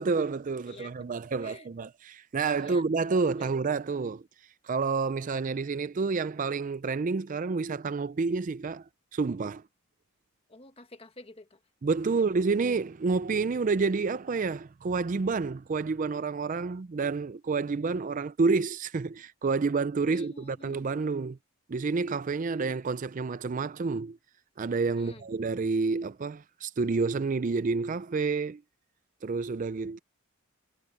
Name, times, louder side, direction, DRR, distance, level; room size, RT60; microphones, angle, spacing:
voice 1, 0.0-4.2 4.6-8.8 9.1-9.6 11.8-21.4 21.7-24.2 24.6-28.6 29.2-30.0, right 4 dB, 35° right, 0.4 m, -29 dB
voice 2, 10.5-11.6 12.0-12.2 20.0-20.9 24.9-25.3, left 2 dB, 25° left, 1.4 m, -49 dB
head